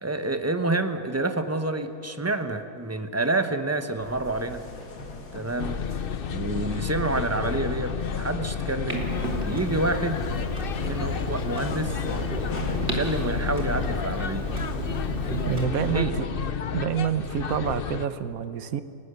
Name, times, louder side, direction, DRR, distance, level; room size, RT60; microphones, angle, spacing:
voice 1, 0.0-4.7 5.3-5.9 6.3-9.1 9.4-10.2 10.8-12.1 12.8-14.5 15.9-16.2, right 2 dB, 10° right, 8 dB, 0.8 m, -28 dB
sound 1, 4.0-16.6, left 3 dB, 80° left, 2.5 m, -41 dB
sound 2, 5.6-18.1, left 6 dB, 45° left, 0.8 m, -31 dB
Clock, 8.9-15.6, right 1 dB, 45° right, 3.2 m, -33 dB
voice 2, 15.5-16.1 16.7-18.8, right 9 dB, 65° right, 12 dB, 1.4 m, -27 dB
29.0 x 19.0 x 6.8 m, 2.6 s
omnidirectional pair, 1.7 m